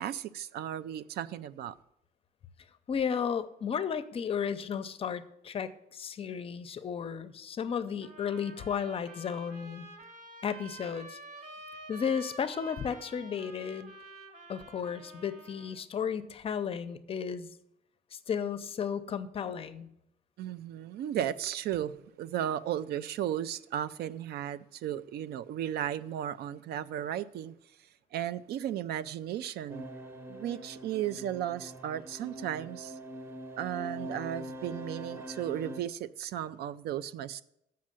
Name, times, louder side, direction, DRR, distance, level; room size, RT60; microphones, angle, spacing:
voice 1, 0.0-1.8 20.4-27.5 28.1-29.9 30.3-33.0 33.6-37.4, right 11 dB, 85° right, 0.4 m, -35 dB
voice 2, 2.9-9.9 10.4-11.2 11.9-13.9 14.5-17.5 18.1-19.9, left 7 dB, 35° left, 0.5 m, -34 dB
sound 1, 8.0-15.8, right 2 dB, 60° right, 1.5 m, -49 dB
sound 2, 29.7-35.8, right 1 dB, 15° right, 0.8 m, -43 dB
7.4 x 5.7 x 7.5 m
cardioid pair, 170°, 16 cm